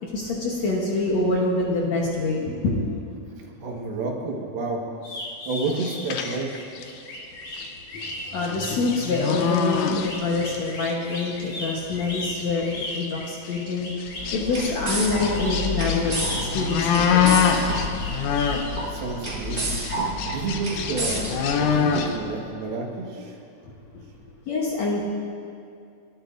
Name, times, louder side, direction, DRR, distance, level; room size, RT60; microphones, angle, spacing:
voice 1, 0.0-2.9 8.3-12.7 12.9-13.9 14.3-16.1 16.5-17.3 24.5-25.1, left 3 dB, 60° left, -3 dB, 1.9 m, -25 dB
voice 2, 3.4-4.9 5.5-6.5 18.6-19.8 20.3-23.4, right 3 dB, 80° right, 0 dB, 3.4 m, -30 dB
sound 1, 5.0-14.3 15.1-18.6, left 1 dB, 45° left, 3.3 m, -37 dB
sound 2, 5.6-7.0 7.5-7.7 8.0-10.6 10.8-11.3 11.9-12.0 12.4-12.5 12.8-13.1 13.7-18.9 19.2-22.2, left 7 dB, 80° left, 1.7 m, -26 dB
sound 3, 14.1-22.2, equal, 25° right, 1.7 m, -30 dB
29.0 x 11.5 x 2.6 m, 2.4 s
omnidirectional pair, 4.3 m